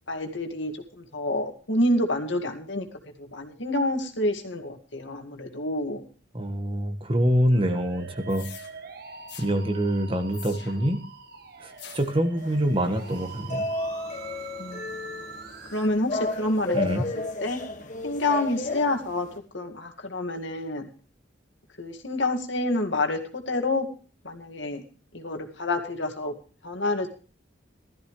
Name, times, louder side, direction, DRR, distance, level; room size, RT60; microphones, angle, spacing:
voice 1, 0.1-2.9 3.2-6.1 14.6-14.8 15.7-17.1 17.4-17.6 18.0-19.3 19.5-20.9 21.8-23.9 24.2-24.8 25.1-26.4 26.6-27.1, left 1 dB, 75° left, 4 dB, 2.1 m, -28 dB
voice 2, 6.3-8.5 9.4-11.0 11.6-13.7 16.7-17.0, equal, 30° right, 7 dB, 1.5 m, -25 dB
Musical instrument, 7.5-15.9, right 4 dB, 55° right, 1.3 m, -44 dB
sound 1, 8.3-8.7 9.3-9.5 10.3-10.9 11.8-12.2, left 10 dB, 60° left, 2.0 m, -45 dB
sound 2, 12.4-19.4, left 2 dB, 40° left, 1.8 m, -33 dB
16.0 x 13.5 x 3.2 m, 0.37 s
head